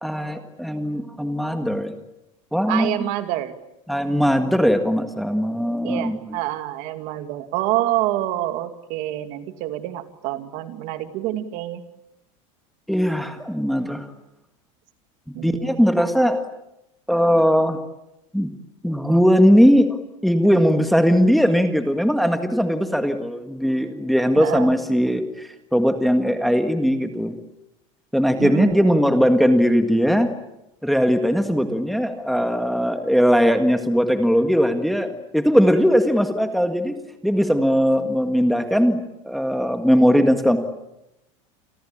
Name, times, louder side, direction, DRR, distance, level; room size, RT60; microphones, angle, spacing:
voice 1, 0.0-1.9 2.5-2.9 3.9-6.4 12.9-14.1 15.3-16.4 17.1-17.8 18.3-18.5 18.8-19.9 20.2-27.3 28.1-30.4 30.8-36.9 37.2-40.6, equal, ahead, 6 dB, 1.8 m, -19 dB
voice 2, 2.7-3.5 5.8-11.8 15.3-15.8 24.4-24.7 28.4-29.1, right 14 dB, 50° right, 9 dB, 2.5 m, -27 dB
29.5 x 23.0 x 8.7 m, 0.88 s
supercardioid pair, 165°, 17 cm